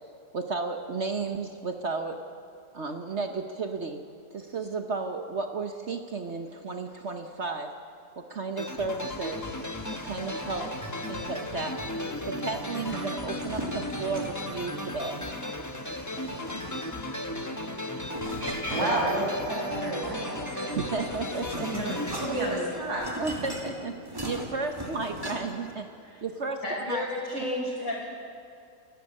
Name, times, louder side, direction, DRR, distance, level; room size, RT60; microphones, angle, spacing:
voice 1, 0.3-2.3 2.7-4.0 4.3-7.7 8.2-9.5 10.0-10.8 11.1-15.2 20.7-21.7 23.2-23.9 24.2-25.9 26.2-27.1, right 3 dB, 50° right, 6 dB, 1.2 m, -33 dB
sound 1, 8.6-23.4, left 1 dB, 10° left, 1.1 m, -35 dB
sound 2, 9.4-14.8, equal, 85° left, 3.4 m, -48 dB
sound 3, 13.2-14.6 16.1-17.1 18.1-19.5 20.6-25.7, equal, 15° right, 2.5 m, -39 dB
voice 2, 18.2-20.8 21.6-23.1, right 1 dB, 70° right, -3 dB, 6.5 m, -30 dB
voice 3, 26.6-28.1, left 1 dB, 55° left, -3 dB, 6.3 m, -31 dB
29.0 x 12.0 x 8.7 m, 2.5 s
omnidirectional pair, 1.7 m